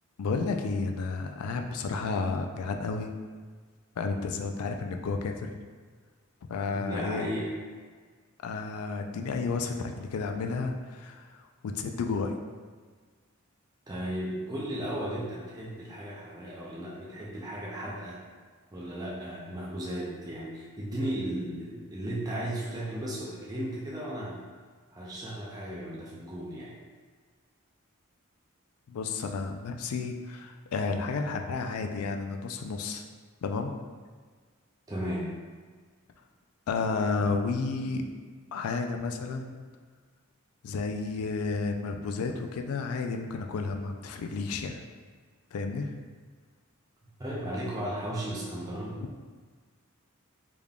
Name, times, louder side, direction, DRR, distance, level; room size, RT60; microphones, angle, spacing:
voice 1, 0.2-3.1 4.0-5.6 6.5-7.3 8.4-11.4 11.6-12.3 28.9-33.0 33.4-33.7 36.7-38.0 38.5-39.6 40.6-44.8 45.5-46.0 49.0-49.1, left 4 dB, 85° left, 4 dB, 0.4 m, -32 dB
voice 2, 6.7-7.5 13.9-18.2 18.7-24.4 24.9-26.7 34.9-35.3 47.2-49.0, right 1 dB, 15° right, -6 dB, 0.4 m, -35 dB
3.5 x 3.5 x 2.3 m, 1.5 s
head